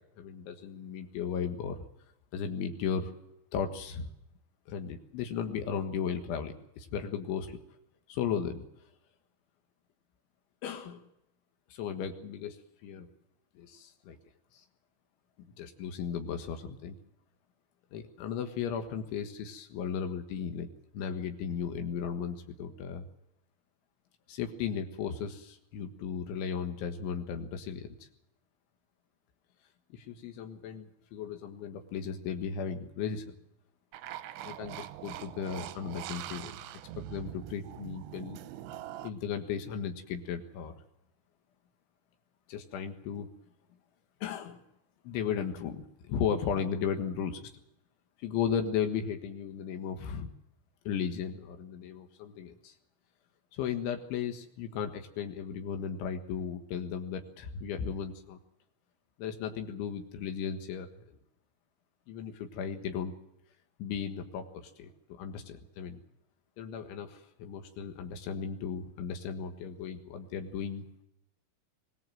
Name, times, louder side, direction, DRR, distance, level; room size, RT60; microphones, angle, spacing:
voice 1, 0.2-1.9 2.3-3.1 3.5-4.1 4.7-7.6 8.1-8.7 10.6-11.1 11.7-12.6 12.8-13.1 13.6-14.2 14.5-14.7 15.4-17.0 17.9-20.7 20.9-23.1 24.3-28.0 29.9-30.9 31.1-33.4 34.4-36.6 37.0-38.4 39.0-40.7 42.5-43.3 44.2-44.6 45.1-47.5 48.2-50.3 50.9-52.8 53.5-58.4 59.2-61.2 62.1-63.1 63.8-66.0 66.6-70.9, left 7 dB, 75° left, 6 dB, 3.7 m, -35 dB
sound 1, 33.9-39.1, right 13 dB, 75° right, 2.7 m, -43 dB
23.0 x 17.5 x 7.7 m, 0.82 s
omnidirectional pair, 5.8 m